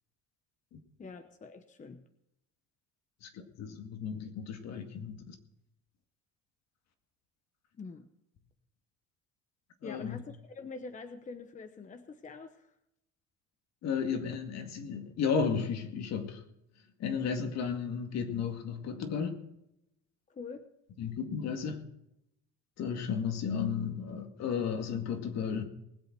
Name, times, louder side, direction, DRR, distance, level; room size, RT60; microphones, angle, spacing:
voice 1, 1.0-2.0 7.8-8.1 9.8-12.7 20.3-20.7, left 4 dB, 25° left, 1.0 m, -45 dB
voice 2, 3.2-5.3 9.8-10.2 13.8-16.4 17.0-19.4 21.0-21.8 22.8-25.6, left 6 dB, 60° left, 2.2 m, -34 dB
20.0 x 8.0 x 6.0 m
cardioid pair, 130°, 30 cm